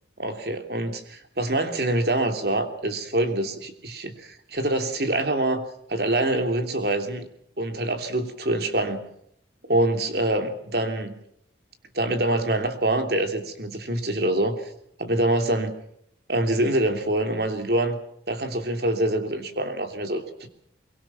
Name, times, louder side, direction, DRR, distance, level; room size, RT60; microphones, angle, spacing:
voice 1, 0.2-5.6 5.9-7.2 7.6-9.1 9.7-11.1 12.0-14.6 15.0-15.8 16.3-18.0 18.3-20.5, right 1 dB, 60° right, 6 dB, 3.2 m, -25 dB
23.5 x 23.5 x 6.1 m, 0.70 s
head